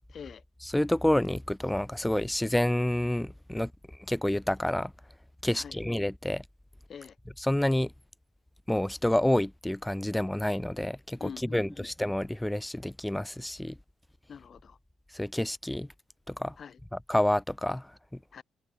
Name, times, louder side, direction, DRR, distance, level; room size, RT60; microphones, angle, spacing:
voice 1, 0.1-0.4 5.5-5.8 6.9-7.2 11.2-11.9 14.3-14.8 16.6-16.8 18.3-18.4, left 7 dB, 50° left, 2.1 m, -45 dB
voice 2, 0.6-4.9 5.4-6.4 7.4-7.9 8.7-13.8 15.1-15.9 16.3-16.6 17.1-18.2, left 1 dB, 5° left, 1.9 m, -28 dB
cardioid pair, 90°, 0 cm